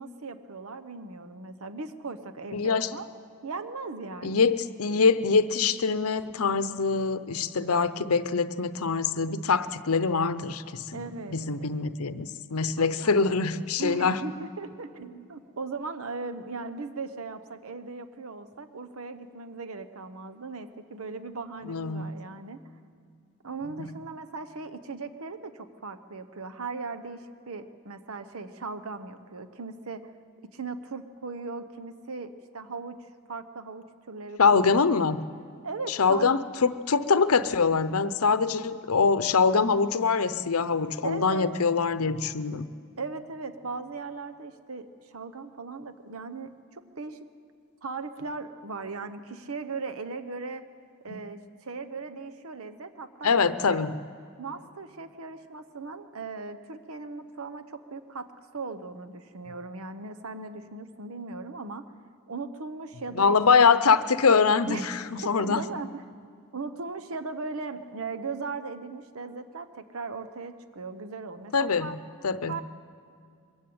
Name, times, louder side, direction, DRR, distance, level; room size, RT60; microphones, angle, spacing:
voice 1, 0.0-3.1 3.4-4.4 10.9-11.7 12.8-13.2 13.8-22.6 23.4-30.1 30.4-33.0 33.3-34.4 34.7-35.2 35.6-36.3 41.0-41.5 43.0-47.3 47.8-50.6 51.0-53.8 54.4-61.8 62.3-63.7 64.7-64.9 65.4-66.0 66.5-72.0 72.4-72.6, right 4 dB, 75° right, 9 dB, 0.9 m, -38 dB
voice 2, 2.5-2.9 4.2-11.0 11.3-14.2 21.7-22.1 23.8-23.9 34.4-35.3 35.9-42.7 51.1-51.2 53.2-54.0 63.2-65.6 71.5-72.0 72.2-72.6, left 5 dB, 85° left, 13 dB, 0.7 m, -24 dB
22.5 x 15.5 x 8.7 m, 2.3 s
head